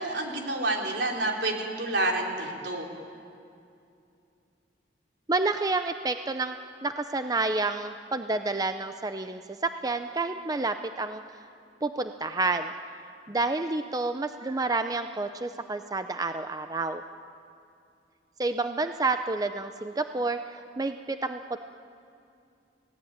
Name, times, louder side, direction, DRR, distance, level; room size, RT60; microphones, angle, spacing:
voice 1, 0.0-2.9, right 2 dB, 75° right, 0 dB, 3.8 m, -29 dB
voice 2, 5.3-6.6 6.8-11.2 11.8-12.7 13.3-17.0 18.4-21.6, right 3 dB, 20° right, 8 dB, 0.6 m, -29 dB
30.0 x 17.5 x 8.9 m, 2.5 s
head